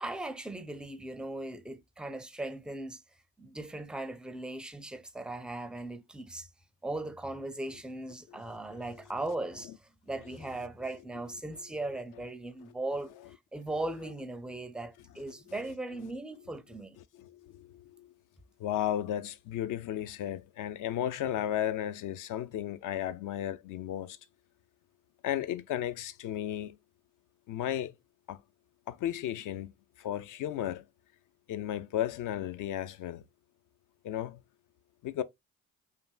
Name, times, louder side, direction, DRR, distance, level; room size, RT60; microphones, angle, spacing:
voice 1, 0.0-3.0 3.4-6.5 6.8-9.7 10.0-17.0, right 2 dB, ahead, 0.4 m, -38 dB
voice 2, 17.1-18.1 18.6-24.2 25.2-26.7 27.5-27.9 28.3-28.4 28.9-29.7 30.0-30.8 31.5-33.2 34.0-34.4 35.0-35.2, left 11 dB, 55° left, 0.4 m, -34 dB
3.3 x 2.5 x 2.2 m
hypercardioid pair, 50°, 39 cm